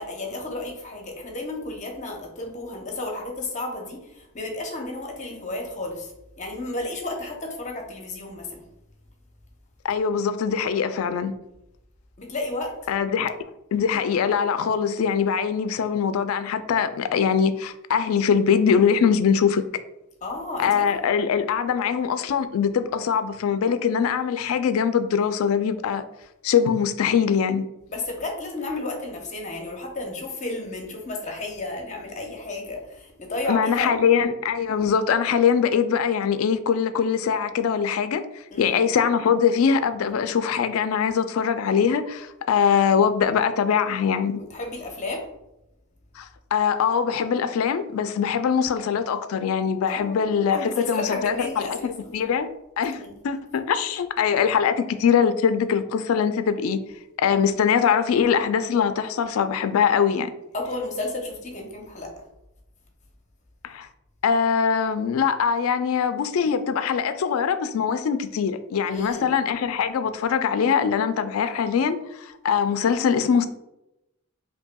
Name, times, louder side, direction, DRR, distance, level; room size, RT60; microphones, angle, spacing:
voice 1, 0.0-6.1 6.4-8.7 12.2-12.7 20.2-20.9 27.9-34.0 38.5-38.8 44.4-45.2 49.9-52.1 53.0-53.2 60.5-62.1 68.9-69.3, left 2 dB, 35° left, 1 dB, 0.8 m, -32 dB
voice 2, 9.8-11.3 12.9-13.3 13.7-19.6 20.6-26.0 26.4-27.7 33.5-38.2 38.6-44.4 46.2-52.5 52.8-56.8 57.2-60.3 63.6-63.9 64.2-73.5, left 7 dB, 80° left, 11 dB, 0.3 m, -22 dB
5.3 x 2.7 x 2.2 m, 0.89 s
head